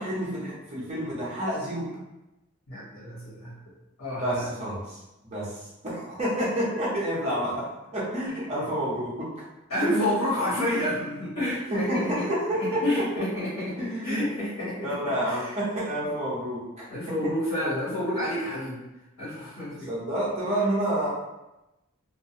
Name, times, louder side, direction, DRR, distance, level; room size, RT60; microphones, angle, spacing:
voice 1, 0.0-1.9 4.2-7.7 7.9-9.3 9.8-10.1 11.7-13.0 13.8-14.2 14.8-16.8 19.9-21.1, right 1 dB, 30° right, -7 dB, 0.6 m, -29 dB
voice 2, 2.7-3.6 4.0-4.5 8.2-8.4 9.7-12.3 12.6-14.9 15.2-15.5 16.9-18.8 19.2-19.9, left 1 dB, 85° left, -10 dB, 1.0 m, -29 dB
2.4 x 2.1 x 2.7 m, 0.97 s
head